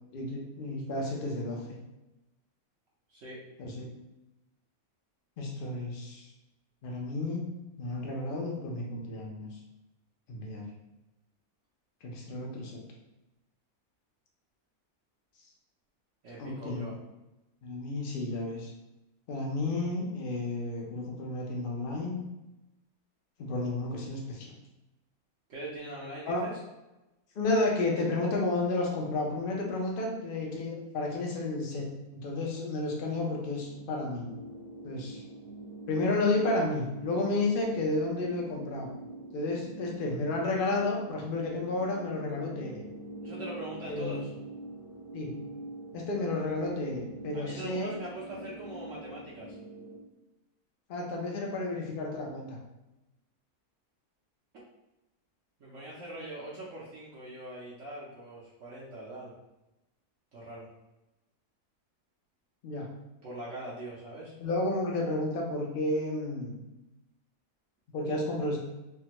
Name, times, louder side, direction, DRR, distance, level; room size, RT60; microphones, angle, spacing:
voice 1, 0.1-1.7 3.6-3.9 5.4-6.2 6.8-7.5 7.8-9.5 10.3-10.6 12.0-12.8 16.4-16.9 17.6-18.7 19.3-22.3 23.4-24.5 26.3-26.4 27.4-34.3 34.8-35.2 35.9-38.9 39.3-42.8 43.9-44.2 45.1-45.4 45.9-47.9 50.9-52.6 62.6-62.9 64.4-66.6 67.9-68.6, left 2 dB, 60° left, -1 dB, 0.5 m, -32 dB
voice 2, 16.2-17.0 25.5-26.6 43.2-44.3 47.3-49.6 55.6-59.3 60.3-60.7 63.2-64.3, right 1 dB, 65° right, -7 dB, 1.0 m, -42 dB
sound 1, 32.9-50.0, right 1 dB, 30° left, 0.7 m, -45 dB
3.4 x 2.1 x 2.9 m, 0.98 s
omnidirectional pair, 1.6 m